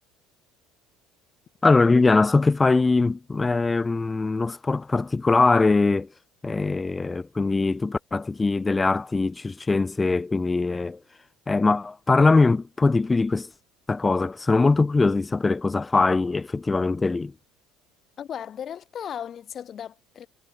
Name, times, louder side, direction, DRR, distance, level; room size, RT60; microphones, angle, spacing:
voice 1, 1.6-6.1 6.4-11.0 11.5-13.5 13.9-17.3, left 3 dB, 20° left, 0.5 m, -21 dB
voice 2, 18.2-20.3, left 9 dB, 45° left, 2.0 m, -36 dB
supercardioid pair, 90°, 0 cm